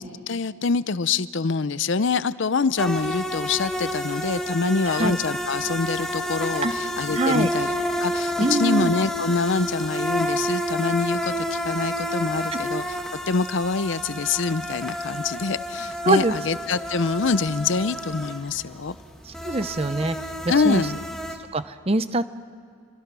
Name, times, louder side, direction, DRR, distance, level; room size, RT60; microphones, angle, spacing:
voice 1, 0.0-7.7 8.0-12.8 13.3-19.0 20.5-21.0, left 4 dB, 65° left, 16 dB, 0.6 m, -25 dB
sound 1, 2.8-21.4, equal, 5° left, 1.7 m, -30 dB
voice 2, 4.8-5.2 6.6-6.7 7.1-7.5 8.4-8.9 12.5-12.6 16.0-16.3 19.2-20.2 20.4-20.9 21.5-22.2, right 2 dB, 30° right, 12 dB, 0.8 m, -24 dB
28.0 x 23.5 x 6.2 m, 2.2 s
head